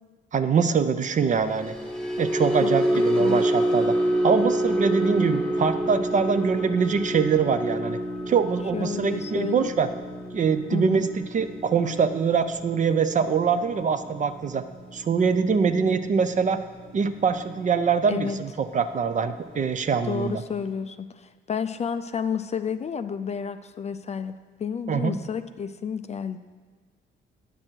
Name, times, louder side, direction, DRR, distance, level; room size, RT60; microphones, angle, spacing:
voice 1, 0.3-1.8 2.2-4.0 4.2-8.0 8.3-9.9 10.3-14.6 14.9-16.6 16.9-20.4 24.9-25.2, right 6 dB, 40° right, 10 dB, 0.5 m, -24 dB
sound 1, 1.4-17.8 18.1-18.4 18.8-19.0, right 1 dB, 5° left, 1.0 m, -28 dB
voice 2, 2.6-3.4 8.7-9.7 10.7-11.1 18.1-18.4 20.0-24.3 24.6-26.4, left 6 dB, 35° left, 11 dB, 0.4 m, -31 dB
9.7 x 6.3 x 4.5 m, 1.5 s
cardioid pair, 90°, 20 cm